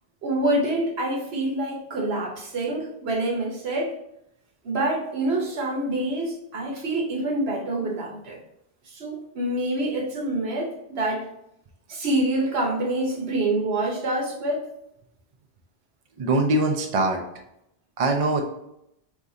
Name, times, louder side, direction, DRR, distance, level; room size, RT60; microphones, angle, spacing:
voice 1, 0.2-3.9 4.6-8.4 8.9-11.3 11.9-14.7, right 1 dB, 75° right, 0 dB, 1.2 m, -26 dB
voice 2, 16.2-17.2 18.0-18.4, right 2 dB, 40° right, 3 dB, 0.6 m, -22 dB
4.8 x 3.5 x 2.7 m, 0.80 s
omnidirectional pair, 1.1 m